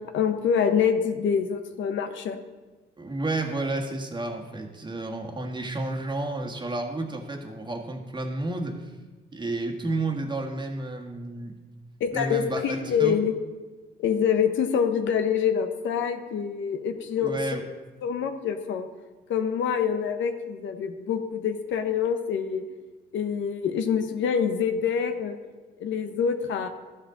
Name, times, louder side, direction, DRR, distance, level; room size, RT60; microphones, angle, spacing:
voice 1, 0.1-2.4 12.0-13.3 14.0-17.6 18.0-18.9 19.3-22.7 23.1-25.4 25.8-26.7, left 7 dB, 75° left, 7 dB, 0.9 m, -26 dB
voice 2, 3.0-8.9 9.3-11.5 12.1-13.2 17.2-17.6, right 2 dB, 25° right, 1 dB, 1.6 m, -31 dB
13.0 x 7.4 x 3.9 m, 1.3 s
cardioid pair, 90°, 20 cm